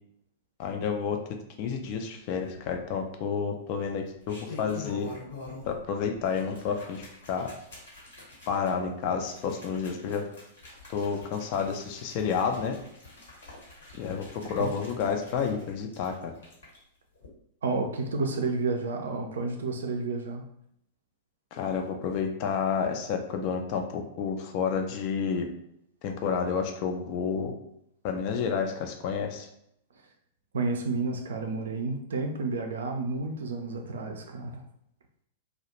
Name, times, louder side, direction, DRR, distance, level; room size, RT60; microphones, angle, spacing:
voice 1, 0.6-1.2 1.6-5.1 5.7-7.5 8.5-10.2 10.9-12.8 13.9-16.3 21.5-25.4 26.0-27.5 28.0-29.5, left 6 dB, 40° left, 4 dB, 0.4 m, -30 dB
sound 1, 2.5-3.2 4.0-5.8 6.1-16.8 17.1-17.3, left 3 dB, 65° left, 1.0 m, -46 dB
voice 2, 17.6-20.4 30.5-34.6, right 3 dB, 65° right, 3 dB, 0.4 m, -31 dB
2.3 x 2.0 x 2.9 m, 0.74 s
figure-of-eight pair, 100°, 0 cm